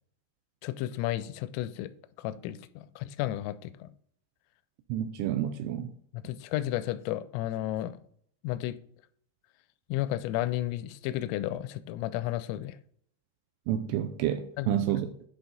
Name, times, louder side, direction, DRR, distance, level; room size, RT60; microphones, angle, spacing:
voice 1, 0.6-1.9 2.2-3.9 6.1-8.0 8.4-8.8 9.9-12.8 14.6-14.8, left 14 dB, 90° left, 3.2 m, -33 dB
voice 2, 4.9-5.9 13.7-15.1, right 11 dB, 80° right, 2.9 m, -29 dB
10.5 x 4.2 x 3.9 m
omnidirectional pair, 5.7 m